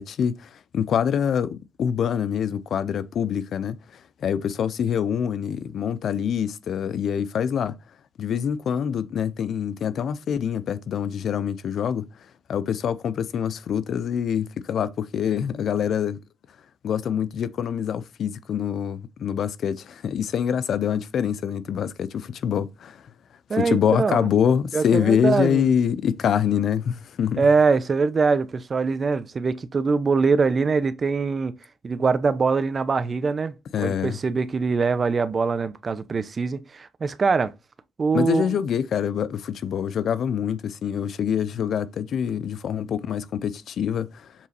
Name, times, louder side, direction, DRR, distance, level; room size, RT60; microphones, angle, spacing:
voice 1, 0.0-7.7 8.2-12.1 12.5-16.2 16.8-23.1 23.5-27.5 33.7-34.2 38.1-44.3, left 8 dB, 65° left, 0.6 m, -25 dB
voice 2, 23.5-24.3 24.7-25.7 27.4-31.5 31.8-37.5 38.0-38.4, right 4 dB, 40° right, 0.8 m, -23 dB
7.4 x 3.9 x 4.3 m
cardioid pair, 90°, 0 cm